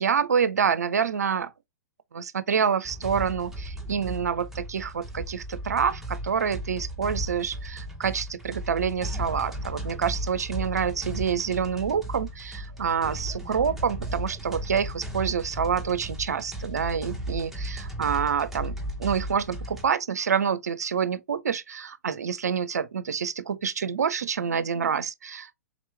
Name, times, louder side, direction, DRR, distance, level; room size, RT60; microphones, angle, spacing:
voice 1, 0.0-1.5 2.1-25.5, right 7 dB, 75° right, 0.5 m, -27 dB
sound 1, 2.8-19.9, right 1 dB, 5° right, 1.0 m, -35 dB
3.8 x 3.0 x 3.2 m
figure-of-eight pair, 115°, 9 cm